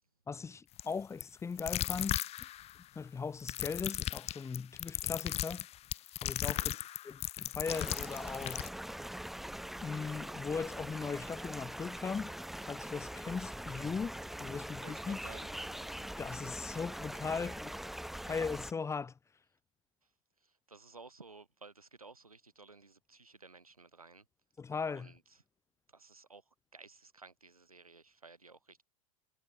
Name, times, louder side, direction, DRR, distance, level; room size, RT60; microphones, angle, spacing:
voice 1, 0.3-2.3 2.9-5.7 6.2-6.8 7.0-8.7 9.8-12.3 12.7-15.2 16.2-17.8 18.3-19.1 24.6-25.1, left 5 dB, 15° left, 1.0 m, -39 dB
sound 1, 0.8-0.9 1.2-1.3 1.6-2.8 3.4-8.7, left 13 dB, 35° left, 2.4 m, -36 dB
voice 2, 6.5-6.9 14.8-15.5 18.2-18.4 20.4-24.3 24.9-25.4 25.9-28.8, right 3 dB, 90° right, 5.3 m, -55 dB
sound 2, 7.7-18.7, equal, ahead, 1.7 m, -43 dB
figure-of-eight pair, 90°, 18 cm